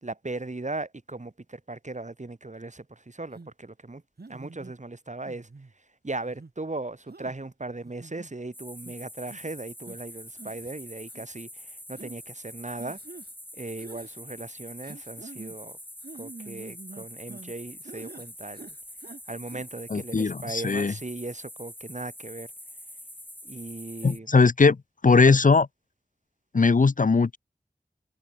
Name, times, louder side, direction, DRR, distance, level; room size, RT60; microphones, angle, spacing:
voice 1, 0.0-4.0 4.3-5.5 5.8-13.0 13.5-15.8 16.1-18.7 19.3-22.5 23.4-24.3 25.2-25.4, right 2 dB, 45° right, 1.7 m, -38 dB
sound 1, 3.3-3.5 4.2-4.7 5.3-5.7 6.3-6.5 7.1-7.4 7.8-8.3 8.8-8.9 9.3-9.5 9.9-10.0 10.4-10.7 11.1-11.2 12.0-12.2 12.8-13.3 13.8-14.2 14.8-15.6 16.0-17.5 17.8-18.3 18.5-19.2 19.5-19.6, right 3 dB, 80° right, 2.1 m, -46 dB
sound 2, 8.5-24.2, left 1 dB, 10° left, 3.9 m, -45 dB
voice 2, 19.9-20.9 24.0-24.8 25.0-25.7 26.5-27.4, left 4 dB, 55° left, 0.5 m, -19 dB
wide cardioid pair, 45°, 16 cm